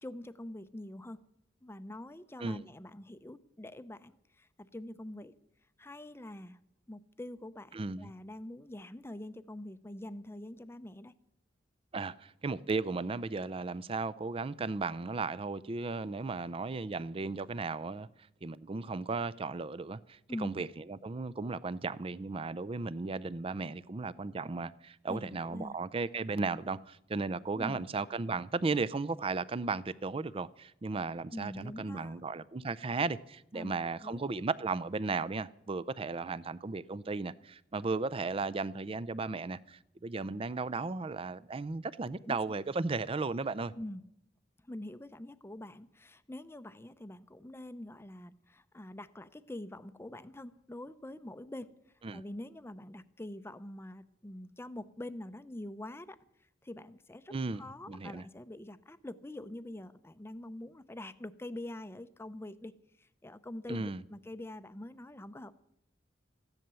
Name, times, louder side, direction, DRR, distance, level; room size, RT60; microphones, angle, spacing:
voice 1, 0.0-1.2 1.6-5.3 5.8-6.6 6.9-11.1 20.3-20.7 25.1-25.8 27.5-27.8 31.3-32.2 33.5-33.8 34.0-34.2 42.2-42.4 43.7-44.0 44.6-51.7 52.1-56.2 56.6-62.7 63.0-65.5, left 1 dB, 15° left, 0.6 m, -45 dB
voice 2, 7.7-8.1 11.9-18.1 18.4-43.7 52.0-52.2 57.3-58.2 63.7-64.0, right 3 dB, 30° right, 0.5 m, -35 dB
14.5 x 10.5 x 6.8 m
head